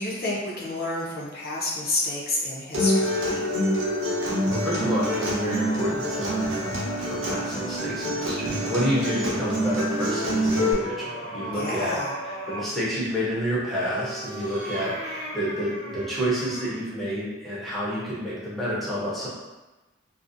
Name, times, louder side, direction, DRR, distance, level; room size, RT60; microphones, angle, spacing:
voice 1, 0.0-3.5 11.5-12.2, left 2 dB, 45° left, -4 dB, 0.5 m, -30 dB
Acoustic guitar, 2.7-10.7, equal, 65° right, 0.7 m, -26 dB
voice 2, 4.3-6.7 7.0-12.0 12.5-19.3, equal, ahead, -9 dB, 0.6 m, -29 dB
sound 1, 9.8-12.7 13.7-16.8, right 1 dB, 25° right, 0.9 m, -37 dB
2.5 x 2.0 x 2.5 m, 1.1 s
head